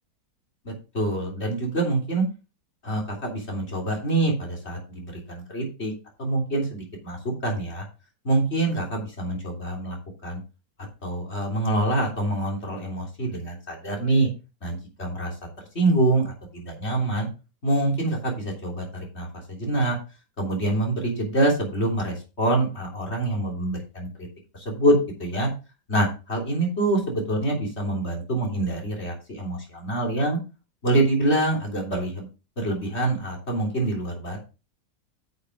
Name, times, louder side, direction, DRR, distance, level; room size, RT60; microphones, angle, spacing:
voice 1, 0.7-2.2 2.8-5.9 6.2-7.9 8.2-10.0 10.2-10.4 11.0-14.3 14.6-17.3 17.6-20.0 20.4-24.1 24.5-25.5 25.9-30.4 30.8-32.3 32.6-34.5, right 2 dB, 35° left, -1 dB, 3.6 m, -25 dB
10.5 x 6.7 x 3.7 m, 0.31 s
omnidirectional pair, 1.9 m